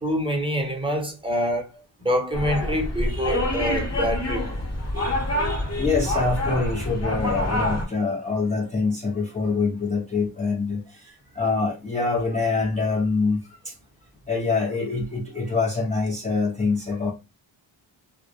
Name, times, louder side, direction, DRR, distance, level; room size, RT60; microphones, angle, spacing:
voice 1, 0.0-1.7 2.0-4.5, equal, 10° right, 0.8 m, -26 dB
sound 1, 2.3-7.9, left 1 dB, 30° left, 1.0 m, -26 dB
voice 2, 5.8-13.7 14.3-17.1, left 4 dB, 15° left, 0.5 m, -25 dB
2.1 x 2.0 x 2.8 m
cardioid pair, 50°, 50 cm